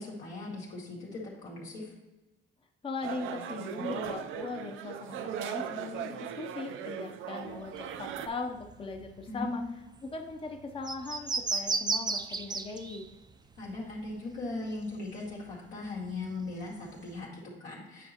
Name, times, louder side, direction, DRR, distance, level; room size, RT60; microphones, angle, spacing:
voice 1, 0.0-1.9 9.3-9.7 13.6-18.1, left 2 dB, 90° left, -4 dB, 2.1 m, -39 dB
voice 2, 2.8-9.6 10.0-13.1, left 3 dB, 25° left, 3 dB, 0.6 m, -39 dB
sound 1, 3.0-8.3, right 8 dB, 85° right, 0.5 m, -38 dB
sound 2, 7.5-15.2 15.5-17.2, right 4 dB, 20° right, 0.4 m, -36 dB
9.2 x 4.7 x 2.9 m, 1.1 s
cardioid pair, 90°, 20 cm